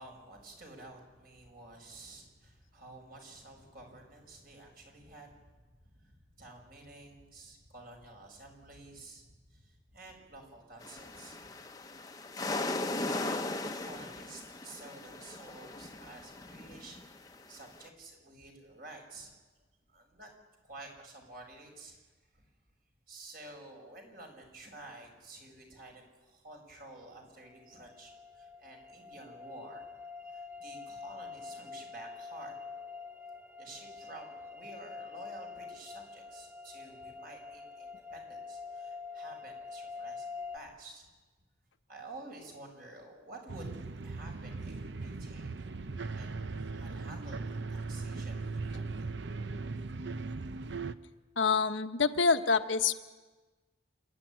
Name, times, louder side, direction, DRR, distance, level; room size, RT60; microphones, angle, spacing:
voice 1, 0.0-5.5 5.8-11.5 12.6-19.3 19.9-20.3 20.6-22.0 22.3-22.5 23.1-29.9 30.2-32.5 33.6-41.1 41.9-45.5 46.1-46.3 46.6-47.4 47.7-49.1, right 2 dB, 50° right, 2 dB, 5.4 m, -51 dB
sound 1, 10.8-17.9, left 2 dB, 20° left, 0.9 m, -38 dB
sound 2, 27.4-40.6, left 4 dB, 10° right, 0.6 m, -46 dB
sound 3, 43.5-51.0, right 3 dB, 70° right, 0.7 m, -38 dB
voice 2, 51.4-52.9, left 5 dB, 85° left, 8 dB, 1.1 m, -26 dB
27.5 x 12.0 x 9.9 m, 1.3 s
head